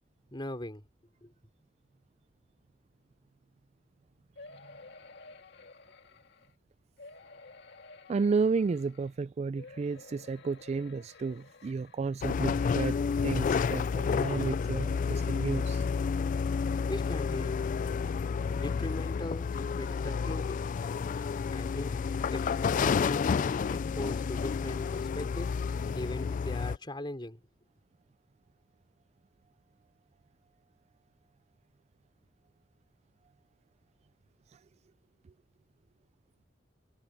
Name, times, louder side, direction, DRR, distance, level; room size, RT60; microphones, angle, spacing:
voice 1, 0.3-0.9 1.2-1.3 16.9-17.6 18.6-20.6 21.5-22.0 22.3-25.6 25.9-27.4, left 1 dB, 25° left, 3.9 m, -40 dB
sound 1, 4.3-6.5 7.0-9.1 9.5-12.4 13.0-13.1 13.3-13.4, left 3 dB, 65° left, 2.0 m, -52 dB
voice 2, 8.1-13.0 13.2-15.8, right 4 dB, 35° right, 0.3 m, -32 dB
sound 2, 12.2-26.8, left 5 dB, 45° left, 0.3 m, -30 dB
head